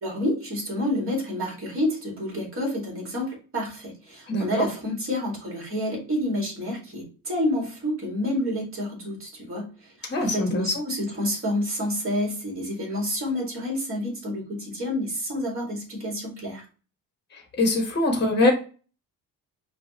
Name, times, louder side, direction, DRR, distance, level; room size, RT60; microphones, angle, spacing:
voice 1, 0.0-16.7, left 1 dB, 35° right, -1 dB, 2.2 m, -29 dB
voice 2, 4.3-4.7 10.1-10.8 17.3-18.5, left 2 dB, 25° left, 2 dB, 1.2 m, -23 dB
5.5 x 2.5 x 2.9 m, 0.37 s
cardioid pair, 120°, 38 cm